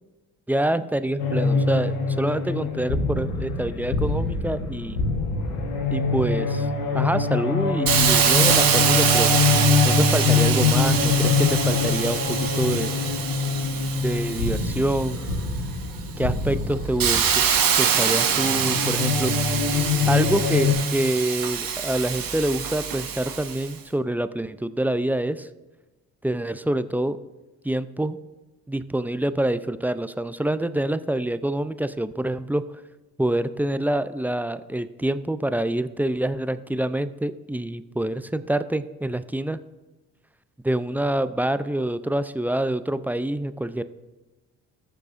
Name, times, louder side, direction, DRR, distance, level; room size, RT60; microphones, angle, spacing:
voice 1, 0.5-5.0 5.9-6.7 6.9-9.3 9.8-12.9 13.9-15.3 16.2-17.4 17.8-19.3 20.1-25.5 26.2-27.2 27.6-28.2 28.7-32.6 33.2-39.6 40.6-43.8, right 1 dB, 5° right, 13 dB, 0.4 m, -26 dB
sound 1, 1.2-20.7, left 4 dB, 90° left, 1.1 m, -24 dB
Hiss, 7.9-15.4 15.9-23.7, right 7 dB, 50° right, 1.2 m, -25 dB
19.0 x 6.8 x 2.5 m, 1.1 s
hypercardioid pair, 50°, 44 cm